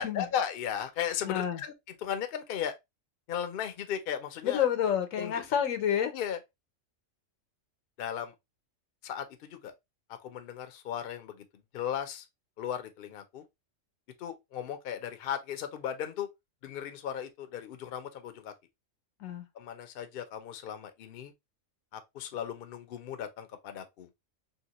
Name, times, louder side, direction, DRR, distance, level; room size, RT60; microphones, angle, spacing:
voice 1, 0.0-1.7 2.0-2.7 3.3-4.6 5.2-5.4 6.1-6.4 8.0-8.3 9.0-9.7 10.1-11.4 11.7-12.3 12.6-13.4 14.2-16.3 16.6-18.5 19.5-21.3 21.9-24.1, left 9 dB, 60° left, 0.6 m, -36 dB
voice 2, 1.2-1.6 4.4-6.1 19.2-19.5, left 9 dB, 85° left, 1.1 m, -29 dB
2.9 x 2.8 x 2.8 m
omnidirectional pair, 1.3 m